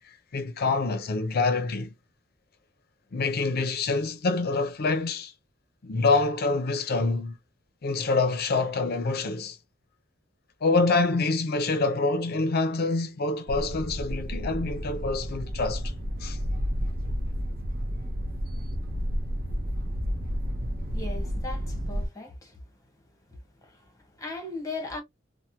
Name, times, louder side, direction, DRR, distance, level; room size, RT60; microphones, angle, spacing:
voice 1, 0.1-1.9 3.1-5.3 5.8-7.4 7.8-9.6 10.6-15.9 16.2-16.4, left 3 dB, 55° left, 0.5 m, -26 dB
sound 1, 13.5-22.1, equal, 50° right, 0.6 m, -31 dB
voice 2, 20.9-22.8 23.3-25.0, left 2 dB, 15° left, 1.1 m, -39 dB
3.3 x 2.1 x 2.8 m
head